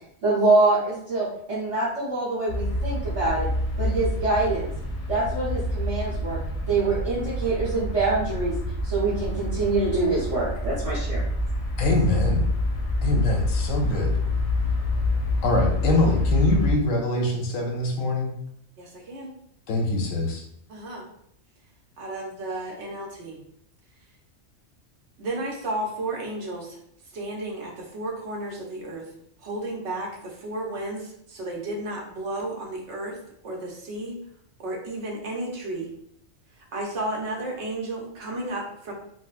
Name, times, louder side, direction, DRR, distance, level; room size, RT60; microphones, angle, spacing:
voice 1, 0.2-3.5 3.8-4.7 5.1-6.4 6.7-8.5 8.8-11.2, right 3 dB, 35° right, -10 dB, 0.7 m, -25 dB
sound 1, 2.5-16.7, left 1 dB, 60° left, 0.8 m, -27 dB
voice 2, 11.8-12.5 13.0-14.1 15.4-18.3 19.7-20.4, left 1 dB, 90° left, 1 dB, 1.1 m, -23 dB
voice 3, 18.8-19.3 20.7-21.0 22.0-23.4 25.2-26.8 27.1-29.0 29.4-33.2 33.4-34.1 34.6-35.9 36.7-38.9, right 1 dB, 65° right, -1 dB, 1.0 m, -33 dB
3.9 x 2.1 x 2.4 m, 0.70 s
omnidirectional pair, 1.4 m